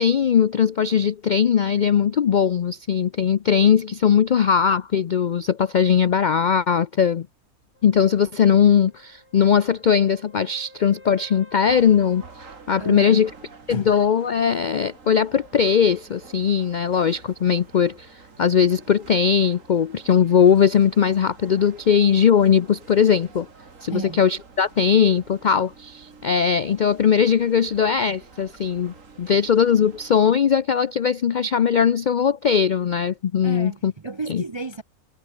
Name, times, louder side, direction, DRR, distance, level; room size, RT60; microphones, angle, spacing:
voice 1, 0.0-7.3 7.8-12.2 12.7-13.3 13.7-23.5 23.8-33.9 34.3-34.4, left 7 dB, 75° left, 0.4 m, -19 dB
sound 1, 7.7-13.4 17.5-17.6, left 1 dB, 45° left, 8.4 m, -51 dB
sound 2, 11.7-30.2, right 4 dB, 60° right, 2.6 m, -48 dB
voice 2, 12.8-13.2 13.7-13.9 23.9-24.2 33.4-34.8, right 3 dB, 40° right, 0.3 m, -32 dB
omnidirectional pair, 1.5 m